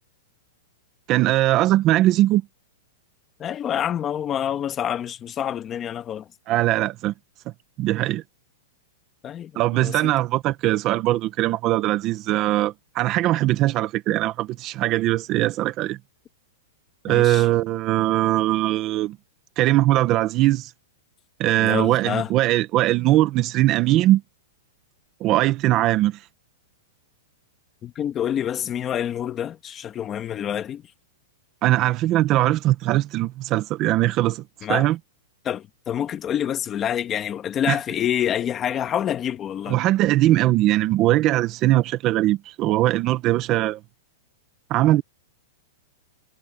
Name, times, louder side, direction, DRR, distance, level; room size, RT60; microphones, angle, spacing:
voice 1, 1.1-2.4 6.5-7.1 7.8-8.2 9.6-16.0 17.0-19.2 19.6-20.7 21.4-24.2 25.2-26.2 31.6-34.4 34.7-35.0 37.7-37.8 39.7-43.8 44.7-45.0, right 15 dB, 25° right, 0.9 m, -20 dB
voice 2, 3.4-6.3 9.2-10.1 17.1-17.5 21.6-22.3 27.8-30.8 34.6-34.9 35.4-39.8, left 10 dB, 20° left, 1.3 m, -27 dB
supercardioid pair, 170°, 0 cm